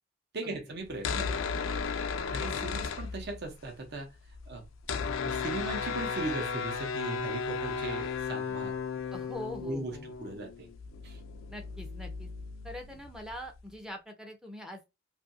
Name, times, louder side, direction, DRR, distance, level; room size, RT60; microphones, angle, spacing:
voice 1, 0.3-1.7 2.3-4.1 4.5-4.7 5.2-8.7 9.6-10.7 11.0-11.2, right 2 dB, 60° right, 0.8 m, -38 dB
sound 1, 0.9-3.6 3.9-4.0 4.2-13.6, left 5 dB, 85° left, 0.4 m, -35 dB
voice 2, 9.1-10.1 11.5-12.3 12.6-14.9, left 1 dB, 5° right, 0.5 m, -43 dB
2.7 x 2.5 x 2.5 m
head